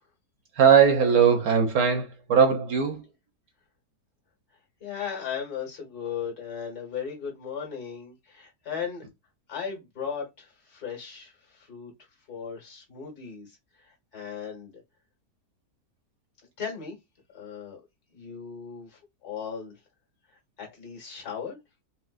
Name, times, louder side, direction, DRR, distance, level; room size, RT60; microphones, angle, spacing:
voice 1, 0.6-3.0, right 7 dB, 65° right, 1.0 m, -20 dB
voice 2, 4.8-9.0 9.5-11.9 12.3-14.8 16.6-17.0 17.3-17.8 18.1-19.7 20.6-21.6, left 7 dB, 60° left, 1.9 m, -37 dB
4.3 x 2.1 x 2.4 m
omnidirectional pair, 1.9 m